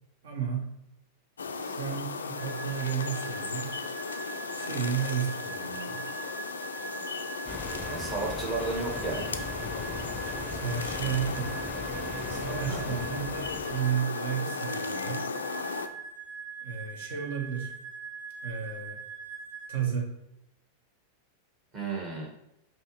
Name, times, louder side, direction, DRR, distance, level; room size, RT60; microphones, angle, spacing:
voice 1, 0.2-0.7 1.6-3.7 4.6-6.1 10.5-11.6 12.2-15.3 16.6-17.7 18.4-19.0 19.7-20.1, right 8 dB, 60° right, 1 dB, 1.0 m, -33 dB
sound 1, 1.4-15.9, left 5 dB, 70° left, 0.3 m, -36 dB
sound 2, 2.4-19.7, right 6 dB, 90° right, 1.2 m, -43 dB
sound 3, 7.5-13.9, left 2 dB, 15° left, 0.6 m, -39 dB
voice 2, 7.9-9.3 12.7-13.0 21.7-22.3, right 3 dB, 30° right, -2 dB, 1.5 m, -33 dB
5.4 x 2.9 x 3.0 m, 0.88 s
figure-of-eight pair, 90°, 0 cm